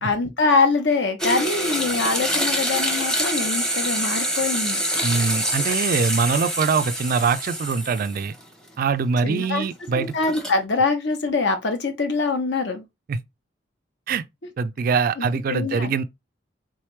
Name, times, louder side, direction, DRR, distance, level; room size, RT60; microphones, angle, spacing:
voice 1, 0.0-4.8 9.2-9.6 9.9-12.8 15.2-15.9, left 3 dB, 70° left, 0.9 m, -23 dB
sound 1, 1.2-8.4 8.8-8.9 10.1-10.6, equal, 5° left, 0.7 m, -26 dB
voice 2, 5.0-8.3 8.8-10.1 13.1-13.2 14.1-14.2 14.6-16.0, right 5 dB, 50° right, 0.3 m, -23 dB
3.6 x 3.2 x 3.1 m
head